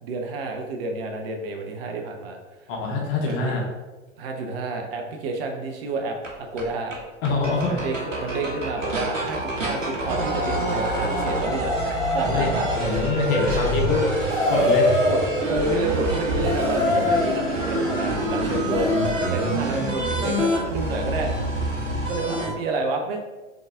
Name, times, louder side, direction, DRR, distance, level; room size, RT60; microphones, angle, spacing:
voice 1, 0.0-2.4 3.3-3.6 4.2-6.9 7.7-12.6 12.9-13.1 15.1-18.9 19.3-21.6 22.1-23.2, right 2 dB, 50° right, 2 dB, 0.8 m, -29 dB
voice 2, 2.7-3.6 7.2-7.8 12.2-14.1 14.5-14.9, left 3 dB, 45° left, -1 dB, 1.3 m, -24 dB
sound 1, 6.2-6.3 6.6-6.7 6.9-7.0 7.3-22.5, right 1 dB, 80° right, 1.1 m, -26 dB
sound 2, 13.2-19.3, left 2 dB, 65° right, 1.4 m, -26 dB
3.9 x 3.6 x 3.5 m, 1.2 s
figure-of-eight pair, 95°, 38 cm